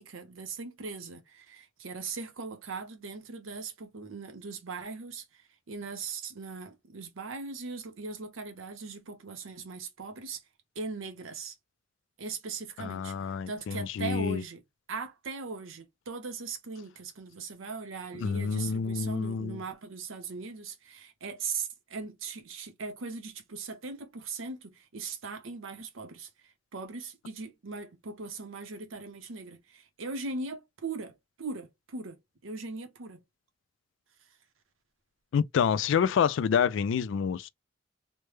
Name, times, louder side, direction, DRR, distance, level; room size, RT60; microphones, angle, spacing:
voice 1, 0.0-5.2 5.7-10.4 10.8-11.5 12.2-14.6 14.9-33.2, right 4 dB, 90° right, 0.8 m, -39 dB
voice 2, 12.8-14.4 18.2-19.6 35.3-37.5, left 7 dB, 65° left, 0.3 m, -28 dB
3.2 x 2.1 x 3.1 m
head